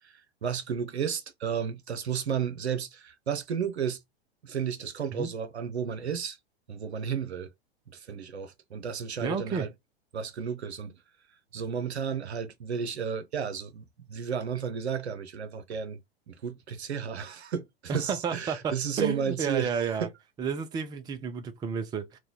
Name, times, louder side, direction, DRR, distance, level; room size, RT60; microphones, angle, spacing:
voice 1, 0.0-4.0 4.4-6.4 6.7-7.5 7.9-9.7 10.1-11.0 11.5-16.0 16.3-20.1, right 7 dB, 90° right, 0.6 m, -33 dB
voice 2, 9.2-9.7 17.9-20.1 20.4-22.2, right 6 dB, 15° right, 0.4 m, -31 dB
3.0 x 2.2 x 3.8 m
hypercardioid pair, 100°, 32 cm